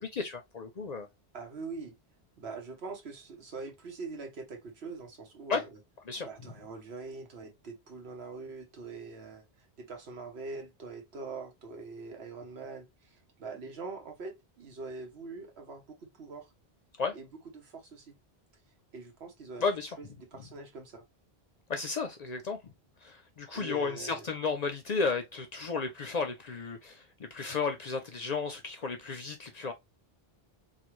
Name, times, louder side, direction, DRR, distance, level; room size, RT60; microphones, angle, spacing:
voice 1, 0.0-1.1 5.5-5.6 6.1-6.3 17.0-17.2 19.6-19.9 21.7-22.7 23.0-29.7, left 4 dB, 55° left, 0.5 m, -33 dB
voice 2, 1.3-2.0 2.4-5.7 6.2-9.4 9.8-16.5 17.1-17.3 17.5-18.2 18.9-19.6 20.0-21.0 23.5-24.3, right 4 dB, 80° right, 1.2 m, -43 dB
3.2 x 2.2 x 3.0 m
omnidirectional pair, 1.1 m